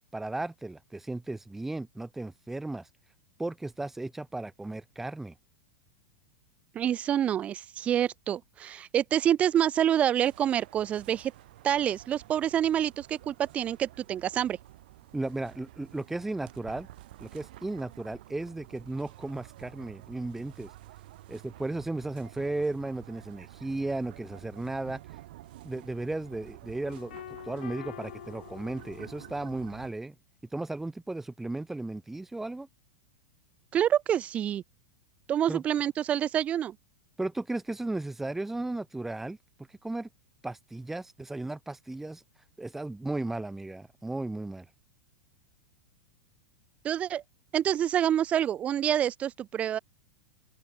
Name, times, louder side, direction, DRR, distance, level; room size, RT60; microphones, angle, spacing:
voice 1, 0.1-2.9 3.4-5.3 15.1-16.9 17.2-20.7 21.3-25.0 25.6-27.2 27.5-30.2 30.5-32.7 35.5-35.6 37.2-39.4 39.8-40.1 40.4-42.2 42.6-44.7, right 2 dB, 5° right, 1.8 m, -35 dB
voice 2, 6.7-11.3 11.6-14.6 33.7-34.6 35.3-36.7 46.8-47.2 47.5-49.8, right 10 dB, 25° right, 0.5 m, -27 dB
sound 1, 10.2-29.9, right 16 dB, 65° right, 2.1 m, -50 dB
sound 2, 26.8-29.7, left 12 dB, 75° left, 2.8 m, -46 dB
open air
hypercardioid pair, 130°, 5 cm